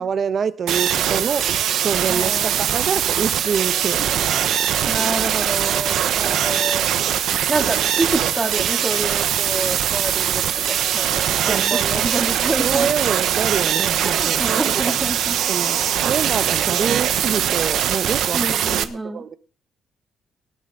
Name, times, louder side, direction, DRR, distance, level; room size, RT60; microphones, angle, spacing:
voice 1, 0.0-5.2 6.2-6.6 11.4-11.8 12.6-14.9 15.5-19.4, right 6 dB, 50° right, 12 dB, 1.2 m, -26 dB
sound 1, 0.7-18.8, right 10 dB, 80° right, 1.2 m, -21 dB
voice 2, 2.1-2.9 4.8-7.0 7.5-12.9 14.0-15.4 18.3-19.2, right 2 dB, 20° right, 4 dB, 3.0 m, -28 dB
19.0 x 12.5 x 4.0 m, 0.39 s
cardioid pair, 90°, 0 cm